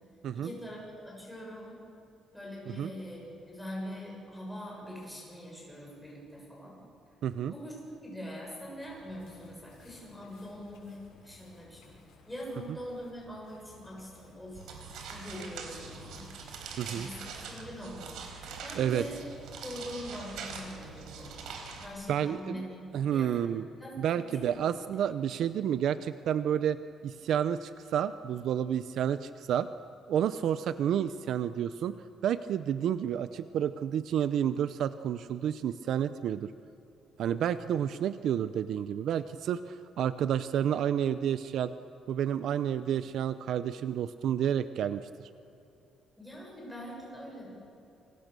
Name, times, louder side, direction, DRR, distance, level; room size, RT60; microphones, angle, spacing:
voice 1, 0.3-1.8 2.3-6.8 7.5-7.8 8.0-11.8 12.3-14.7 15.1-16.3 16.9-19.2 19.6-21.4 21.8-23.5 23.8-24.5 42.9-43.0 46.2-47.5, equal, 5° left, -3 dB, 7.1 m, -43 dB
voice 2, 7.2-7.5 16.8-17.1 18.7-19.0 22.1-22.6 22.9-23.6 24.0-26.8 27.0-29.7 30.1-32.0 32.2-36.5 37.2-41.7 42.1-45.1, right 9 dB, 55° right, 12 dB, 0.6 m, -30 dB
sound 1, 8.8-15.0, left 4 dB, 75° left, 6.8 m, -58 dB
sound 2, 14.5-21.9, right 5 dB, 80° right, 4.2 m, -43 dB
28.5 x 25.0 x 6.8 m, 2.8 s
cardioid pair, 175°, 0 cm